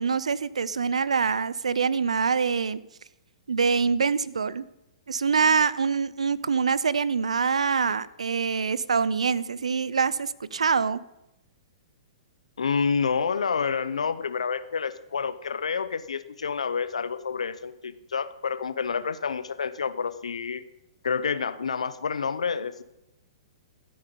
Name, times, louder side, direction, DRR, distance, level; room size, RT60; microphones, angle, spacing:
voice 1, 0.0-2.8 3.5-4.6 5.1-11.0, right 5 dB, 90° right, 19 dB, 0.5 m, -25 dB
voice 2, 12.6-20.6 21.0-22.8, left 6 dB, 85° left, 15 dB, 0.7 m, -28 dB
13.5 x 8.7 x 5.3 m, 0.91 s
hypercardioid pair, 130°, 3 cm